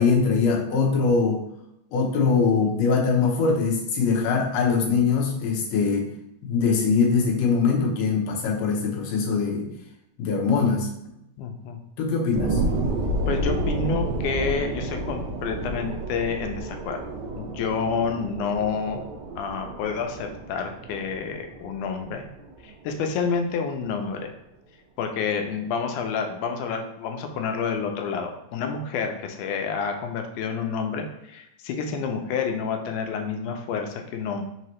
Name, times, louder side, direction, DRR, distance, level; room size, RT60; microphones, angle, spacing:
voice 1, 0.0-1.4 1.9-6.1 6.4-9.7 10.2-10.9 12.0-12.6, left 5 dB, 70° left, -1 dB, 1.9 m, -22 dB
voice 2, 11.4-11.8 13.3-17.0 17.4-19.0 19.4-22.3 22.6-24.3 25.0-34.4, left 5 dB, 85° left, 4 dB, 2.1 m, -29 dB
sound 1, 12.4-23.4 23.8-23.9, right 2 dB, 80° right, 1.9 m, -30 dB
5.1 x 2.8 x 3.1 m, 0.80 s
omnidirectional pair, 3.4 m